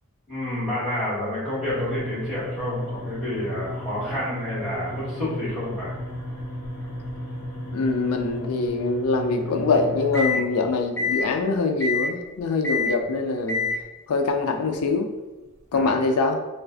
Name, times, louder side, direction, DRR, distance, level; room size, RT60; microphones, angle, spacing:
voice 1, 0.3-5.9 15.7-15.9, left 1 dB, 5° right, -9 dB, 1.4 m, -29 dB
sound 1, 1.6-10.5 11.0-11.3 11.8-12.1 12.6-13.0 13.5-13.8, left 2 dB, 15° left, 0.7 m, -31 dB
voice 2, 7.7-13.7 14.1-15.1 15.7-16.4, left 3 dB, 80° left, 4 dB, 0.4 m, -24 dB
3.2 x 2.2 x 3.7 m, 1.1 s
head